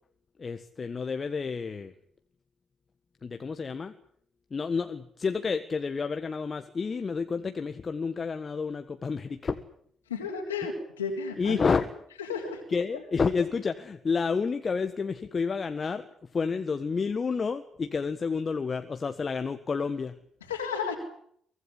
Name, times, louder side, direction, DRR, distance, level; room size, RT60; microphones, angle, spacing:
voice 1, 0.4-1.9 3.2-4.0 4.5-9.6 11.4-11.9 12.7-20.2, left 5 dB, 40° left, 8 dB, 1.6 m, -30 dB
voice 2, 10.1-11.6 12.3-12.6 20.5-21.0, left 5 dB, 90° left, 0 dB, 3.8 m, -32 dB
24.0 x 16.5 x 10.0 m, 0.66 s
hypercardioid pair, 45°, 0 cm